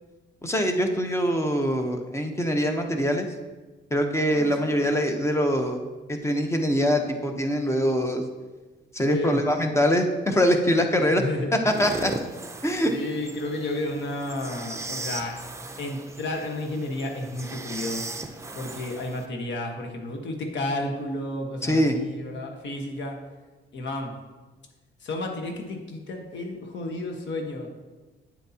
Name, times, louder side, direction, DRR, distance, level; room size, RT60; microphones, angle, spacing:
voice 1, 0.4-3.3 3.9-5.8 6.1-8.2 8.9-11.2 11.6-12.1 12.6-12.9 21.6-22.0, equal, 15° left, 5 dB, 1.0 m, -23 dB
voice 2, 4.3-4.9 9.0-9.4 11.1-11.5 12.9-15.4 15.8-18.0 18.5-23.2 23.7-24.1 25.0-27.7, left 1 dB, 65° left, 3 dB, 1.4 m, -32 dB
sound 1, 11.7-19.3, right 2 dB, 15° right, 0.7 m, -37 dB
9.1 x 7.9 x 2.9 m, 1.2 s
cardioid pair, 90°, 20 cm